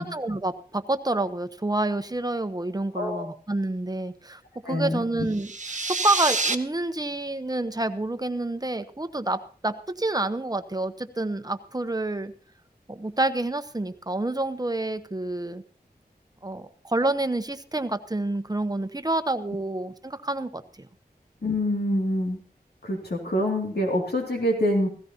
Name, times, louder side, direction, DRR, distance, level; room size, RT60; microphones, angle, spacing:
voice 1, 0.0-12.3 12.9-15.6 16.4-20.9, right 2 dB, 25° right, 10 dB, 0.9 m, -28 dB
voice 2, 2.9-3.2 4.6-5.0 21.4-22.4 22.8-24.9, left 1 dB, 85° left, 1 dB, 2.5 m, -25 dB
sound 1, 5.3-6.6, right 3 dB, 50° right, 0.8 m, -27 dB
16.5 x 15.5 x 2.9 m, 0.42 s
wide cardioid pair, 50°, 16 cm